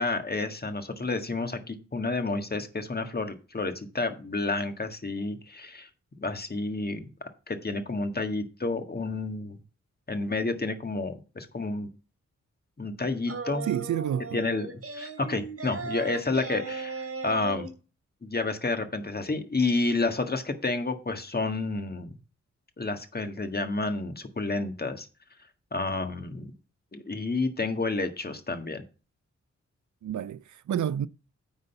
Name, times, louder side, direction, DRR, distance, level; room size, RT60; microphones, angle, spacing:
voice 1, 0.0-5.9 6.2-7.1 7.5-9.6 10.1-11.9 12.8-13.7 14.3-17.7 18.2-22.2 22.8-25.1 25.7-26.5 26.9-28.8, left 3 dB, 30° left, 1.6 m, -30 dB
sound 1, 13.3-17.7, right 4 dB, 50° right, 2.5 m, -37 dB
voice 2, 13.7-14.4 30.0-31.1, right 10 dB, 75° right, 0.5 m, -29 dB
9.7 x 4.0 x 6.8 m
cardioid pair, 80°, 30 cm